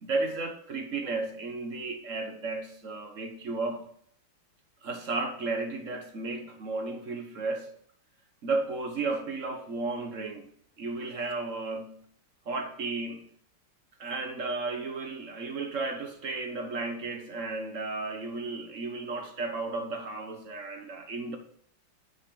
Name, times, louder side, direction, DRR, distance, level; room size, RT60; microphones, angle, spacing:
voice 1, 0.0-3.9 4.8-7.7 8.4-10.5 10.8-12.0 12.5-13.3 14.0-21.4, right 3 dB, 45° right, 1.1 m, -33 dB
9.3 x 6.5 x 3.8 m
omnidirectional pair, 2.3 m